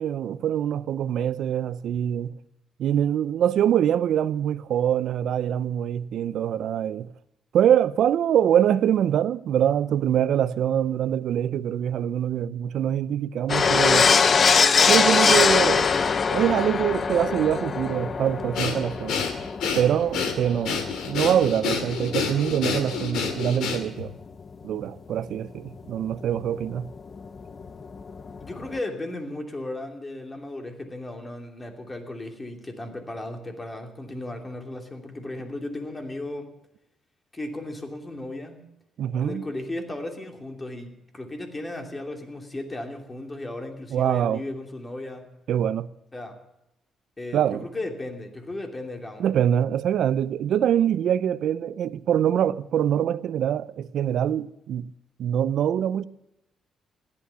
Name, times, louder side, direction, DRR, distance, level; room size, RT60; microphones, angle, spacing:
voice 1, 0.0-2.3 2.8-7.1 7.5-14.1 14.9-15.9 16.3-19.3 19.7-24.1 24.6-26.9 39.0-39.4 43.9-44.4 45.5-45.9 47.3-47.7 49.2-54.9 55.2-56.0, right 10 dB, 70° right, 0.6 m, -24 dB
sound 1, 13.5-23.2 23.5-23.6 23.8-23.9 26.4-26.5 26.7-26.8 27.0-28.8, left 5 dB, 45° left, 0.7 m, -22 dB
Breathing, 18.5-24.1, left 5 dB, 85° left, 2.2 m, -28 dB
voice 2, 28.4-36.5 37.3-38.7 39.2-45.3 46.1-46.4 47.2-49.3, left 1 dB, 20° left, 2.8 m, -35 dB
15.5 x 11.5 x 6.9 m
cardioid pair, 90°, 0 cm